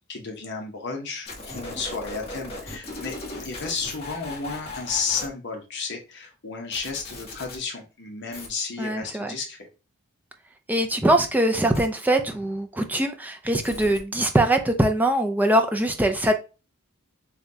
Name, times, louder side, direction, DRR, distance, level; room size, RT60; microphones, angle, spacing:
voice 1, 0.1-3.2 3.4-9.7, left 4 dB, 50° left, 0.9 m, -32 dB
sound 1, 1.3-5.3 6.7-7.6 8.3-8.5 11.7-11.9 13.6-14.0, left 2 dB, 25° left, 1.2 m, -37 dB
voice 2, 8.8-9.3 10.7-16.3, right 1 dB, 5° right, 0.4 m, -22 dB
6.8 x 2.3 x 2.7 m
head